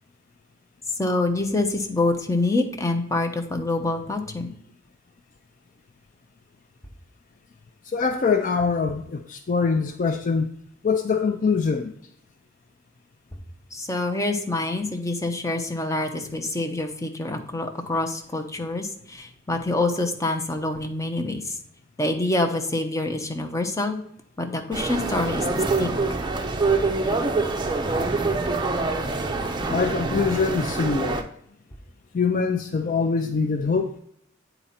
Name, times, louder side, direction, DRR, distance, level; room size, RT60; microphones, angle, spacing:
voice 1, 1.0-4.5 13.7-21.5 22.0-24.0 24.4-26.0, left 2 dB, 15° left, 5 dB, 0.7 m, -26 dB
voice 2, 7.9-10.5 10.8-12.0 29.7-31.3 32.1-34.0, left 5 dB, 45° left, 7 dB, 0.4 m, -23 dB
sound 1, 24.7-31.2, right 3 dB, 25° right, 0.6 m, -25 dB
8.7 x 4.0 x 4.3 m, 0.71 s
head